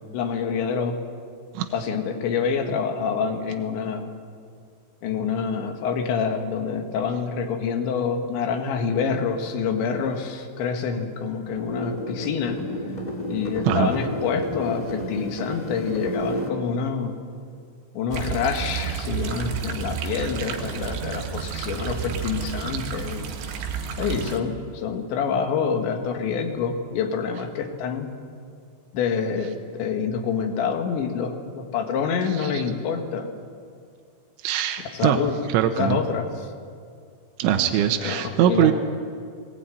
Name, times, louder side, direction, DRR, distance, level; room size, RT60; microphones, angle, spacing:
voice 1, 0.1-1.0 1.7-4.1 5.0-12.6 13.3-17.2 18.0-23.3 24.0-28.1 28.9-33.3 34.9-35.3 35.8-36.5 38.0-38.7, left 6 dB, 75° left, 5 dB, 4.0 m, -27 dB
sound 1, 11.4-16.5, left 1 dB, 60° left, 0.4 m, -31 dB
sound 2, 18.1-24.4, right 7 dB, 70° right, 3.8 m, -31 dB
voice 2, 20.2-20.5 32.5-32.6 34.4-35.2 35.5-36.0 37.4-38.7, right 11 dB, 85° right, 5 dB, 3.5 m, -22 dB
21.0 x 19.5 x 9.2 m, 2.2 s
omnidirectional pair, 5.3 m